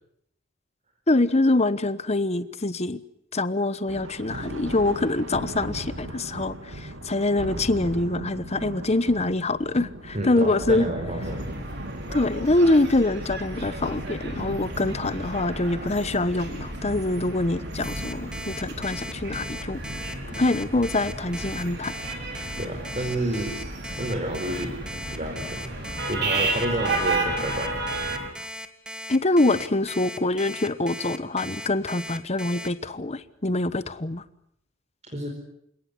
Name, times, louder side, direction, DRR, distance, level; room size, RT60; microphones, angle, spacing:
voice 1, 1.1-3.0 3.3-10.9 12.1-19.8 20.4-21.9 29.1-34.2, left 2 dB, 35° left, 14 dB, 1.1 m, -24 dB
Thunder, 3.9-21.6, right 1 dB, 80° right, 2.7 m, -39 dB
voice 2, 10.1-11.5 22.6-23.5 24.0-24.8 25.1-25.7 26.1-27.7 35.1-35.3, right 1 dB, 35° right, 2 dB, 4.7 m, -30 dB
sound 1, 11.2-28.3, right 2 dB, 60° right, 5.8 m, -33 dB
Alarm, 17.8-32.7, equal, 5° right, 1.8 m, -37 dB
28.5 x 18.0 x 9.8 m, 0.72 s
head